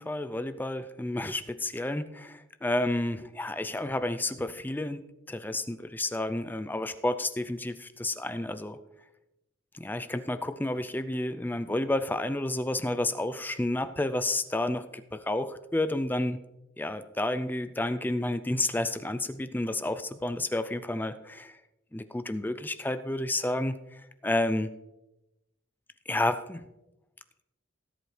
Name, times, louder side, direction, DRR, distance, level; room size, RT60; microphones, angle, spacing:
voice 1, 0.0-5.0 5.3-8.8 9.7-16.4 16.8-21.6 21.9-24.7 26.1-26.7, left 1 dB, 10° left, 12 dB, 0.4 m, -30 dB
17.5 x 8.0 x 3.2 m, 0.95 s
head